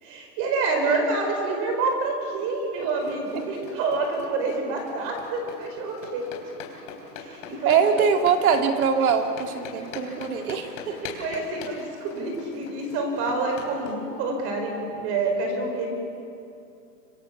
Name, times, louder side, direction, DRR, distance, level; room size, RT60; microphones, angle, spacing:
voice 1, 0.0-6.3 7.2-7.8 11.0-15.9, right 3 dB, 30° right, 3 dB, 4.6 m, -27 dB
sound 1, 3.0-14.0, left 5 dB, 45° left, 3.7 m, -42 dB
voice 2, 7.6-11.0, right 6 dB, 60° right, 5 dB, 2.4 m, -23 dB
25.0 x 24.5 x 7.2 m, 2.6 s
supercardioid pair, 170°, 50 cm